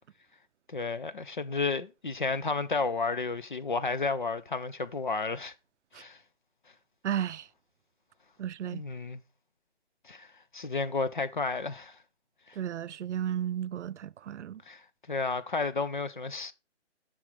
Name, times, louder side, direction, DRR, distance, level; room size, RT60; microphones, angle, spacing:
voice 1, 0.7-5.5 5.9-6.2 8.7-9.2 10.0-10.3 10.5-12.0 12.5-12.6 14.7-16.5, left 4 dB, 45° left, 0.5 m, -32 dB
voice 2, 7.0-7.5 8.4-8.8 12.6-14.6, right 10 dB, 85° right, 0.5 m, -33 dB
7.3 x 6.2 x 3.0 m
hypercardioid pair, 175°, 35 cm